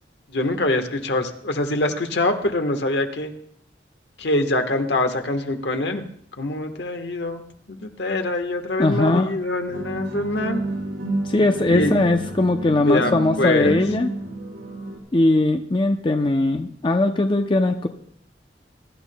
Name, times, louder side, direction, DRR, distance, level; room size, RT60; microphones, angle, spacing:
voice 1, 0.3-3.3 4.2-6.0 6.4-10.6 11.7-11.9 12.9-13.8, left 2 dB, 75° left, 6 dB, 1.3 m, -24 dB
voice 2, 8.8-9.3 11.3-14.1 15.1-17.9, left 2 dB, 30° left, 6 dB, 0.5 m, -20 dB
sound 1, 9.6-15.0, right 1 dB, 80° right, 4.1 m, -30 dB
23.0 x 12.0 x 2.2 m, 0.66 s
head